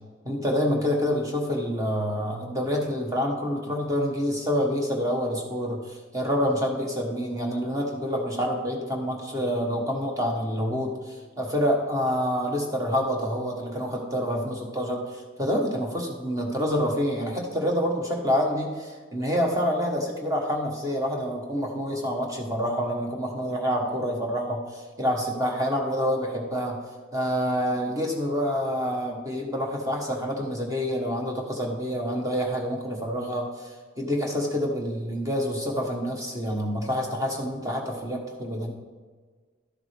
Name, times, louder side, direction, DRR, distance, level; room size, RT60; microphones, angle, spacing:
voice 1, 0.2-26.8 27.1-38.7, equal, 15° right, 0 dB, 1.3 m, -27 dB
12.5 x 7.2 x 3.5 m, 1.5 s
head